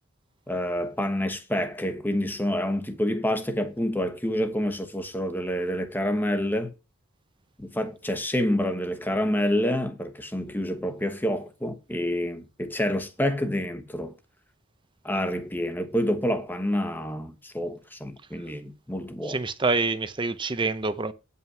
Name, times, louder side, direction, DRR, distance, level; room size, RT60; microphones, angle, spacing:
voice 1, 0.5-6.7 7.6-14.1 15.0-19.4, equal, 10° left, 1.1 m, -28 dB
voice 2, 19.3-21.1, right 3 dB, 25° right, 0.6 m, -26 dB
9.3 x 5.7 x 5.6 m
head